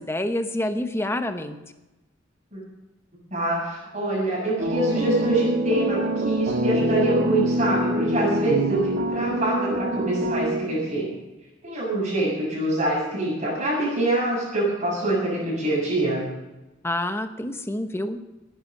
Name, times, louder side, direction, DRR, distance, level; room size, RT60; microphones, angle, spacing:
voice 1, 0.0-1.6 16.8-18.2, left 1 dB, 10° left, 8 dB, 1.0 m, -27 dB
voice 2, 3.3-11.1 11.6-16.2, right 1 dB, 40° right, -6 dB, 7.2 m, -25 dB
sound 1, 4.6-11.0, right 1 dB, 55° right, 1.8 m, -25 dB
18.0 x 11.5 x 5.4 m, 1.0 s
head